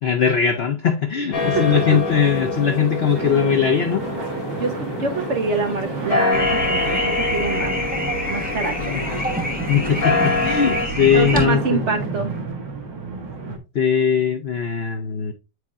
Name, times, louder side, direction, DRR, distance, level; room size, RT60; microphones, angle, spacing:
voice 1, 0.0-4.0 8.8-9.0 9.7-11.9 13.7-15.3, left 7 dB, 70° left, 0.5 m, -20 dB
sound 1, 1.3-10.9, left 3 dB, 50° left, 1.5 m, -26 dB
sound 2, 3.1-13.6, right 4 dB, 80° right, 1.8 m, -32 dB
voice 2, 4.6-7.8 8.3-9.2 11.1-12.3, right 4 dB, 55° right, 0.8 m, -25 dB
sound 3, 6.3-11.5, equal, 10° right, 0.6 m, -26 dB
8.4 x 4.7 x 2.4 m
omnidirectional pair, 1.9 m